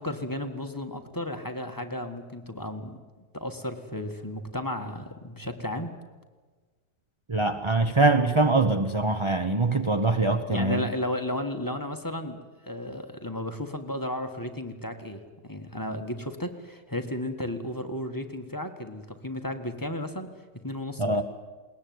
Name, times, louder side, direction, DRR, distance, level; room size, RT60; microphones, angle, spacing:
voice 1, 0.0-3.0 3.3-5.9 10.5-20.3 20.6-21.2, left 1 dB, 10° left, 5 dB, 1.4 m, -34 dB
voice 2, 7.3-10.9 21.0-21.2, right 3 dB, 25° right, 7 dB, 0.6 m, -23 dB
21.0 x 19.5 x 9.4 m, 1.4 s
omnidirectional pair, 1.9 m